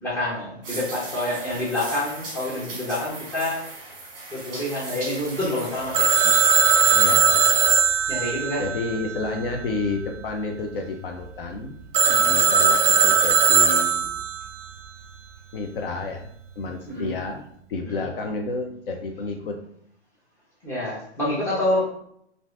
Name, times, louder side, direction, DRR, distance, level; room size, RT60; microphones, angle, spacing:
voice 1, 0.0-3.6 4.3-6.1 8.1-8.7 12.1-12.3 16.9-17.1 17.8-18.0 20.6-21.8, left 1 dB, 5° left, -6 dB, 0.7 m, -27 dB
sound 1, 0.6-7.2, right 2 dB, 25° right, 1.1 m, -38 dB
Telephone, 5.9-9.6 11.9-14.5, right 6 dB, 55° right, 0.5 m, -19 dB
voice 2, 6.9-7.5 8.6-11.8 12.3-14.1 15.5-16.3 16.6-17.4 17.7-19.6, left 3 dB, 55° left, 3 dB, 0.4 m, -30 dB
3.2 x 2.5 x 2.4 m, 0.71 s
hypercardioid pair, 140°, 35 cm